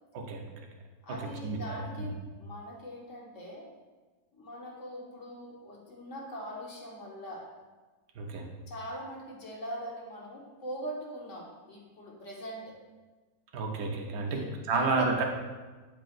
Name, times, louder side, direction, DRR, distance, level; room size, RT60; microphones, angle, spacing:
voice 1, 0.1-0.4 1.4-1.6 2.0-2.1 8.2-8.5 13.5-15.2, right 3 dB, 60° right, 1 dB, 1.2 m, -30 dB
voice 2, 1.0-3.7 4.3-7.5 8.7-12.8 14.3-15.1, equal, 45° left, -2 dB, 1.2 m, -42 dB
9.2 x 5.0 x 2.5 m, 1.3 s
omnidirectional pair, 2.0 m